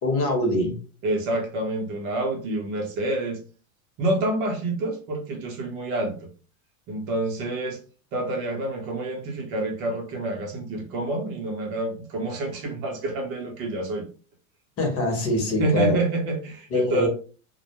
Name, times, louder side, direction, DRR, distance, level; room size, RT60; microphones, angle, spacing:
voice 1, 0.0-0.7 14.8-16.0 16.7-17.1, left 1 dB, 30° left, 2 dB, 1.0 m, -23 dB
voice 2, 1.0-3.4 4.0-6.1 6.9-7.8 8.1-14.0 15.6-17.1, right 2 dB, 45° right, 3 dB, 0.8 m, -28 dB
2.2 x 2.1 x 2.9 m, 0.38 s
hypercardioid pair, 105°, 42 cm